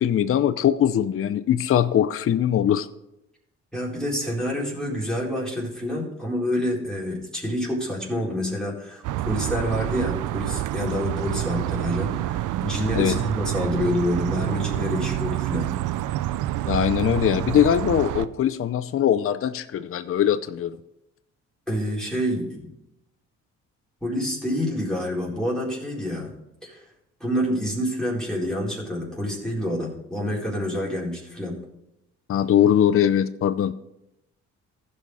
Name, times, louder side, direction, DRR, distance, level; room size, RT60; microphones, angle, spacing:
voice 1, 0.0-2.9 12.9-13.1 16.7-20.8 32.3-33.7, left 10 dB, 45° left, 11 dB, 0.6 m, -21 dB
voice 2, 3.7-15.7 21.7-22.7 24.0-26.3 26.6-26.8 27.2-31.5, equal, ahead, -5 dB, 4.2 m, -27 dB
sound 1, 9.0-18.2, right 14 dB, 80° right, 0.5 m, -27 dB
15.0 x 5.6 x 4.8 m, 0.85 s
cardioid pair, 90°, 30 cm